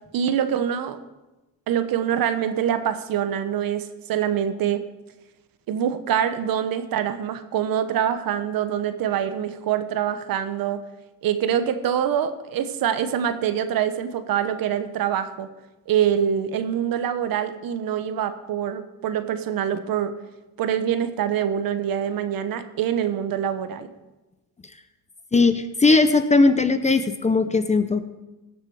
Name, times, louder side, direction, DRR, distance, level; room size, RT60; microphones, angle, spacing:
voice 1, 0.1-1.0 1.7-4.8 5.7-10.8 11.2-15.5 15.9-20.1 20.6-23.9, right 9 dB, 60° right, 11 dB, 1.1 m, -25 dB
voice 2, 25.3-28.0, left 3 dB, 20° left, 11 dB, 0.7 m, -19 dB
17.5 x 7.4 x 4.8 m, 1.1 s
cardioid pair, 100°, 38 cm